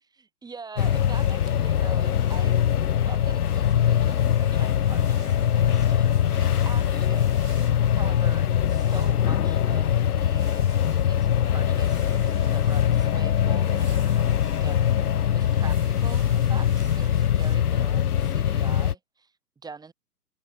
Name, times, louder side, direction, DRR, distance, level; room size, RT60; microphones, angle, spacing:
voice 1, 0.2-2.6 2.9-7.4 8.0-10.7 10.9-14.9 15.3-19.3 19.6-19.9, right 4 dB, 10° right, 4.9 m, -43 dB
sound 1, 0.8-18.9, left 9 dB, 65° left, 1.0 m, -22 dB
sound 2, 0.8-17.6, right 6 dB, 70° right, 7.1 m, -52 dB
sound 3, 11.7-17.1, right 16 dB, 40° right, 6.8 m, -56 dB
figure-of-eight pair, 125°, 48 cm